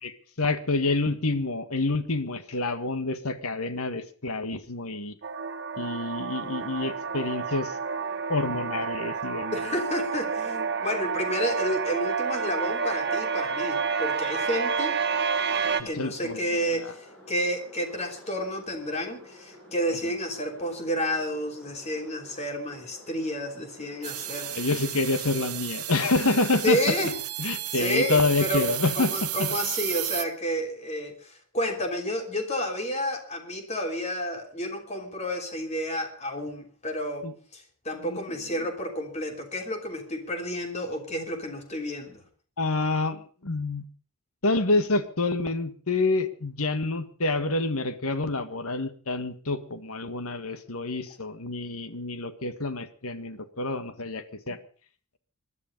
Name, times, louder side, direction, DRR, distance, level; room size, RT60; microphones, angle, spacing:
voice 1, 0.0-5.2 5.8-7.8 8.3-9.8 15.8-16.9 24.4-26.8 27.4-29.5 37.2-37.3 38.0-38.2 42.6-43.8 44.4-54.6, left 3 dB, 80° left, 10 dB, 1.7 m, -28 dB
sound 1, 5.2-15.8, right 5 dB, 50° right, 1.3 m, -29 dB
sound 2, 6.3-25.7, left 1 dB, 5° left, 7.9 m, -51 dB
voice 2, 9.5-15.0 15.8-24.5 26.6-27.1 27.7-28.7 28.9-42.2, equal, 30° left, 4 dB, 3.3 m, -30 dB
sound 3, 24.0-30.2, right 16 dB, 90° right, 1.1 m, -33 dB
21.5 x 12.0 x 5.3 m, 0.42 s
head